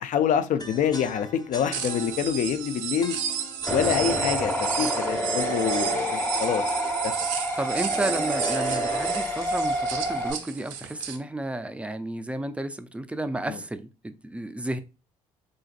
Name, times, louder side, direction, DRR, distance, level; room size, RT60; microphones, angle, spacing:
voice 1, 0.0-3.2 3.7-6.6 13.5-13.6, left 8 dB, 55° left, 0.5 m, -26 dB
sound 1, 0.6-10.7, left 2 dB, 25° left, 0.8 m, -42 dB
sound 2, 1.7-11.2, right 9 dB, 85° right, 0.4 m, -33 dB
sound 3, 3.7-10.3, equal, 10° left, 1.3 m, -28 dB
voice 2, 7.6-14.8, right 1 dB, 10° right, 0.3 m, -32 dB
3.8 x 2.5 x 2.4 m
hypercardioid pair, 60°, 16 cm